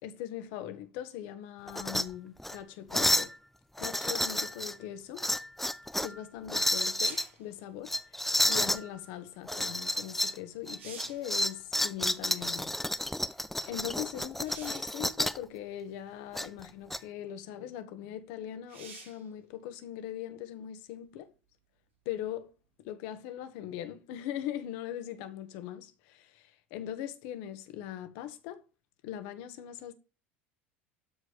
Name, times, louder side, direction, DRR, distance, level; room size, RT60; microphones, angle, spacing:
voice 1, 0.0-3.3 3.8-5.3 6.0-7.9 8.5-12.8 13.7-21.3 22.1-22.5 22.8-28.6 29.0-29.9, left 11 dB, 65° left, 1.7 m, -40 dB
sound 1, 1.7-2.0 2.4-2.6 2.9-3.3 3.8-4.7 5.2-6.1 6.5-7.3 7.9-8.8 9.5-10.4 10.7-15.4 16.3-17.0, left 1 dB, 5° left, 0.7 m, -30 dB
sound 2, 7.0-7.4 10.1-10.2 10.6-11.3 14.4-15.0 16.0-16.1 18.7-19.3 22.8-22.9, right 5 dB, 80° right, 4.0 m, -48 dB
12.5 x 4.8 x 5.3 m
hypercardioid pair, 75°, 6 cm